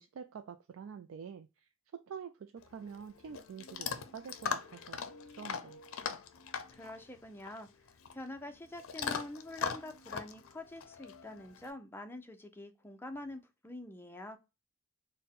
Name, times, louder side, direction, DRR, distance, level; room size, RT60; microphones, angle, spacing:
voice 1, 0.0-5.1 5.4-5.8, right 7 dB, 70° right, 0.3 m, -47 dB
Chewing mastication / Dog, 2.6-11.7, left 6 dB, 75° left, 0.5 m, -41 dB
voice 2, 6.7-7.7 8.1-14.4, left 1 dB, 10° left, 0.5 m, -46 dB
4.2 x 2.1 x 3.6 m
head